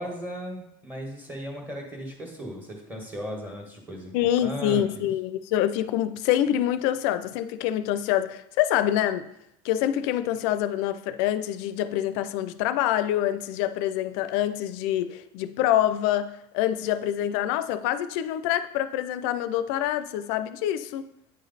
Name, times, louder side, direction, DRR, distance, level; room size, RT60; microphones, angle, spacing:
voice 1, 0.0-5.0, equal, 15° right, 1.5 m, -36 dB
voice 2, 4.1-9.3 9.6-21.1, left 11 dB, 80° left, 0.4 m, -26 dB
9.1 x 3.2 x 4.0 m
cardioid pair, 135°, 13 cm